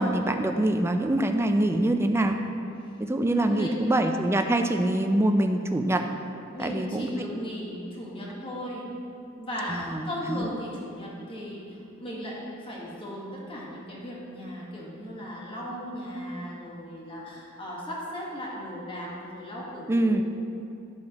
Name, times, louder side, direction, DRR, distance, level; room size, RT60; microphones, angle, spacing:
voice 1, 0.0-2.4 3.0-6.0 6.6-7.1 9.7-10.5 19.9-20.2, right 1 dB, 10° right, 5 dB, 0.4 m, -24 dB
voice 2, 3.5-4.1 6.5-9.0 9.4-20.2, equal, 25° left, -4 dB, 1.5 m, -36 dB
10.5 x 7.3 x 3.0 m, 2.8 s
head